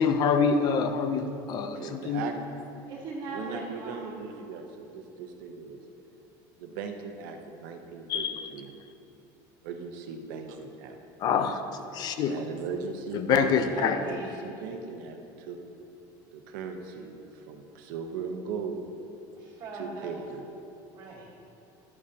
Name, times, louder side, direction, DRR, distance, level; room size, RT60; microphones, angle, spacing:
voice 1, 0.0-2.2 8.1-8.5 11.2-11.6 11.9-12.3 13.1-14.0, left 6 dB, 40° left, 8 dB, 0.6 m, -26 dB
voice 2, 1.7-2.3 3.3-5.8 6.6-8.7 9.6-11.0 12.2-15.6 16.3-18.9 19.7-20.5, right 5 dB, 85° right, 4 dB, 0.9 m, -38 dB
voice 3, 2.9-4.2 13.7-14.3 19.3-20.1 20.9-21.3, right 3 dB, 45° right, -4 dB, 1.4 m, -39 dB
11.0 x 8.6 x 2.8 m, 2.9 s
cardioid pair, 155°, 10 cm